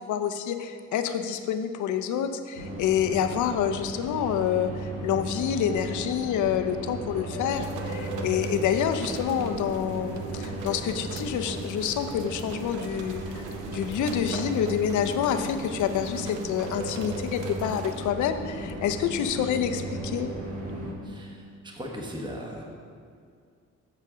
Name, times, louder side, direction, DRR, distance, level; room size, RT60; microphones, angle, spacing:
voice 1, 0.0-20.3, left 8 dB, 75° left, 8 dB, 0.6 m, -28 dB
sound 1, 2.6-20.9, right 1 dB, 50° right, 1.6 m, -35 dB
sound 2, 7.3-18.2, right 5 dB, 80° right, 0.8 m, -44 dB
voice 2, 21.0-22.6, equal, 15° right, 0 dB, 1.1 m, -38 dB
7.7 x 7.2 x 3.7 m, 2.2 s
cardioid pair, 90°, 30 cm